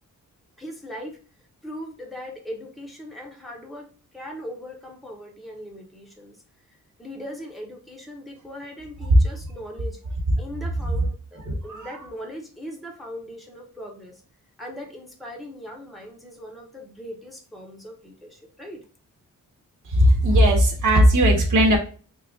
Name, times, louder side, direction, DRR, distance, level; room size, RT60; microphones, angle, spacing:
voice 1, 0.6-3.9 4.1-6.4 6.7-10.0 10.4-14.2 14.6-18.9, equal, ahead, -1 dB, 0.8 m, -39 dB
voice 2, 19.8-21.8, equal, 65° right, 1 dB, 1.2 m, -17 dB
3.7 x 2.4 x 3.7 m, 0.38 s
wide cardioid pair, 145°, 34 cm